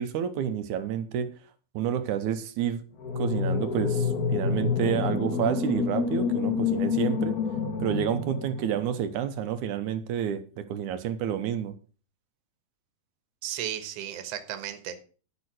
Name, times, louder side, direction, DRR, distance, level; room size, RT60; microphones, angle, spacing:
voice 1, 0.0-1.3 1.7-2.8 3.2-7.4 7.8-11.7, right 9 dB, 75° right, 2.2 m, -29 dB
sound 1, 3.0-9.1, left 5 dB, 80° left, 0.8 m, -28 dB
voice 2, 13.4-15.0, right 11 dB, 60° right, 2.1 m, -34 dB
12.5 x 5.6 x 6.3 m
omnidirectional pair, 3.8 m